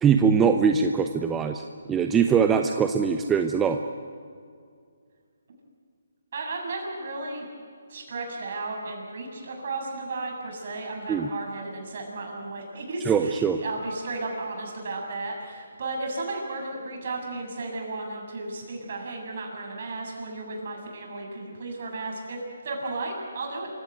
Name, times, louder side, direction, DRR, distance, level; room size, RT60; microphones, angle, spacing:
voice 1, 0.0-1.6 1.9-3.8 11.1-11.3 13.1-13.6, right 6 dB, 10° right, 6 dB, 0.7 m, -22 dB
voice 2, 6.3-7.5 7.9-23.7, right 2 dB, 50° right, 0 dB, 7.4 m, -34 dB
26.5 x 16.5 x 9.4 m, 2.2 s
hypercardioid pair, 165°, 0 cm